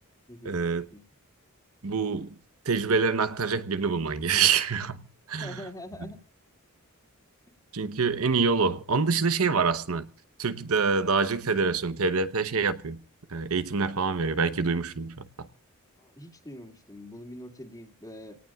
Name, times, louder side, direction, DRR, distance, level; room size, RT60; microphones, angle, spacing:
voice 1, 0.4-0.8 1.8-2.4 2.7-5.6 7.7-10.1 10.4-13.0 13.3-15.5, right 5 dB, 75° right, 1.0 m, -26 dB
voice 2, 5.4-6.2 16.0-18.4, left 1 dB, 15° left, 2.4 m, -43 dB
28.5 x 18.5 x 2.4 m
head